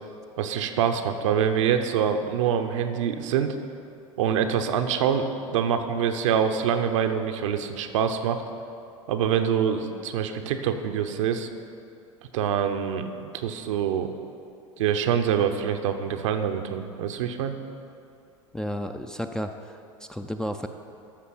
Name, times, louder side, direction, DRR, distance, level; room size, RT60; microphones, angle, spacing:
voice 1, 0.4-3.5 4.2-8.4 9.1-11.5 12.3-14.1 14.8-17.6, right 8 dB, 65° right, 7 dB, 0.8 m, -25 dB
voice 2, 18.5-20.7, equal, 5° left, 4 dB, 0.5 m, -32 dB
13.5 x 5.9 x 5.6 m, 2.5 s
figure-of-eight pair, 80°, 18 cm